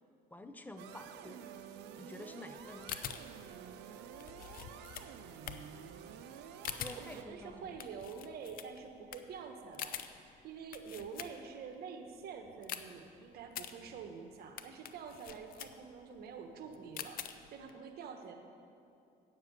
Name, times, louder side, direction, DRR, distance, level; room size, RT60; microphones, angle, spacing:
voice 1, 0.3-1.5 2.0-2.9 6.7-7.8, left 1 dB, 10° left, 8 dB, 0.7 m, -49 dB
sound 1, 0.8-7.2, right 8 dB, 85° right, 0.7 m, -50 dB
sound 2, 2.6-11.7 12.1-17.7, left 9 dB, 60° left, 0.6 m, -46 dB
voice 2, 7.1-10.0 10.4-18.4, right 6 dB, 65° right, 5 dB, 1.1 m, -47 dB
9.0 x 6.7 x 8.1 m, 2.7 s
cardioid pair, 110°, 17 cm